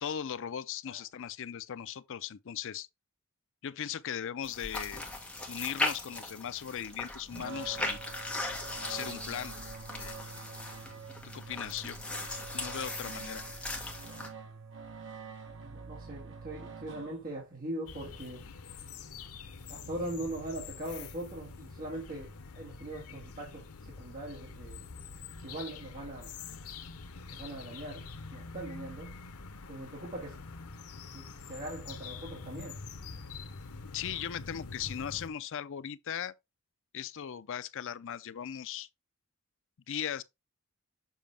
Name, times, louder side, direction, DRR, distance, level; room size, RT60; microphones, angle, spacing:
voice 1, 0.0-2.9 3.6-5.0 5.5-8.0 8.8-9.5 10.0-10.1 11.3-12.0 12.5-13.4 33.9-36.3 36.9-38.9 39.9-40.2, left 9 dB, 60° left, 0.5 m, -38 dB
sound 1, 4.4-14.3, left 2 dB, 5° left, 1.5 m, -38 dB
sound 2, 7.3-17.6, right 5 dB, 60° right, 1.2 m, -46 dB
voice 2, 15.6-18.4 19.7-24.9 25.4-26.3 27.3-28.1 28.3-29.1 29.7-30.4 31.1-32.8, right 1 dB, 40° right, 2.0 m, -41 dB
sound 3, 17.9-35.3, left 4 dB, 90° left, 0.9 m, -46 dB
7.2 x 5.1 x 3.4 m
head